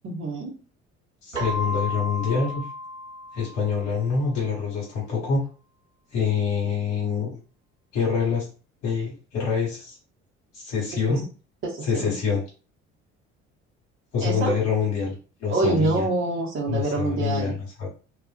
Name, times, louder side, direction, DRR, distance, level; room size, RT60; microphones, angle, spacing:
voice 1, 0.0-0.5 11.1-11.2 11.6-12.1 14.2-14.6 15.5-17.6, right 2 dB, 35° right, -3 dB, 1.0 m, -26 dB
voice 2, 1.2-2.6 3.3-5.4 6.1-7.4 7.9-8.5 8.8-10.0 10.5-11.2 11.8-12.4 14.1-16.1 16.7-17.9, left 5 dB, 55° left, -4 dB, 1.2 m, -26 dB
Keyboard (musical), 1.3-4.1, left 1 dB, 90° right, 0.7 m, -33 dB
2.4 x 2.3 x 2.5 m, 0.36 s
figure-of-eight pair, 55°, 36 cm